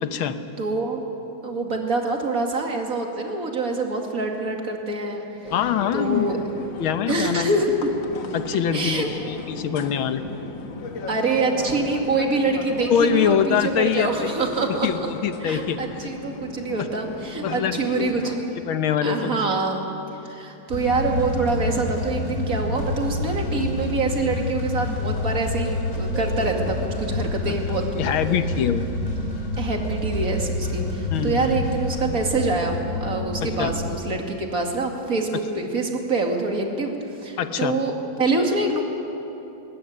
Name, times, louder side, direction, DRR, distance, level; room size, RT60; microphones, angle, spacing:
voice 1, 0.0-0.4 5.5-6.3 6.8-7.5 8.3-10.3 12.9-14.3 14.8-15.8 16.8-16.9 17.4-18.1 18.7-19.6 27.5-27.6 27.9-28.8 31.1-31.6 33.4-33.7 37.4-37.8, left 8 dB, 85° left, 10 dB, 1.8 m, -24 dB
voice 2, 0.6-1.0 1.4-5.2 5.9-6.4 7.1-7.9 8.7-9.1 11.1-14.9 15.4-18.5 19.0-19.8 20.2-27.9 29.6-36.9 37.2-38.8, right 3 dB, 45° right, 2 dB, 2.7 m, -25 dB
sound 1, 5.4-18.4, left 3 dB, 65° left, 2.2 m, -36 dB
sound 2, 20.7-33.9, left 2 dB, 40° left, 3.4 m, -28 dB
20.5 x 19.5 x 9.6 m, 2.9 s
omnidirectional pair, 2.2 m